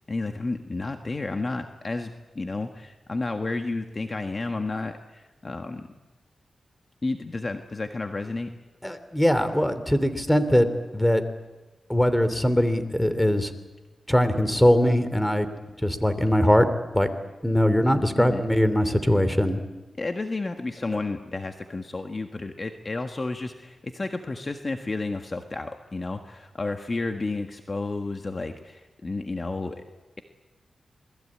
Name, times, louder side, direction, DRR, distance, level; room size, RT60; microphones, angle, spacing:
voice 1, 0.1-5.9 7.0-8.5 18.2-18.4 20.0-29.8, left 3 dB, 35° left, 5 dB, 1.6 m, -31 dB
voice 2, 8.8-10.7 10.9-11.2 11.9-13.5 14.1-15.5 15.8-16.7 16.9-17.1 17.4-19.6, equal, 5° left, 11 dB, 2.9 m, -21 dB
27.5 x 20.5 x 8.7 m, 1.1 s
cardioid pair, 75°, 0 cm